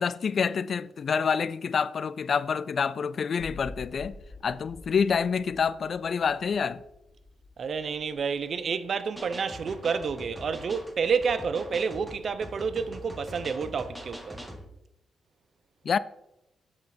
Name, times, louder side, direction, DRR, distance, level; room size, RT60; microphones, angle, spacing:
voice 1, 0.0-6.8 15.8-16.0, left 6 dB, 55° left, 0.4 m, -27 dB
sound 1, 3.4-9.3 9.7-9.8, left 2 dB, 35° left, 3.7 m, -48 dB
voice 2, 7.6-14.4, right 5 dB, 60° right, 0.7 m, -29 dB
sound 2, 9.2-14.6, equal, 5° right, 1.6 m, -43 dB
8.7 x 6.4 x 4.4 m
cardioid pair, 70°, 0 cm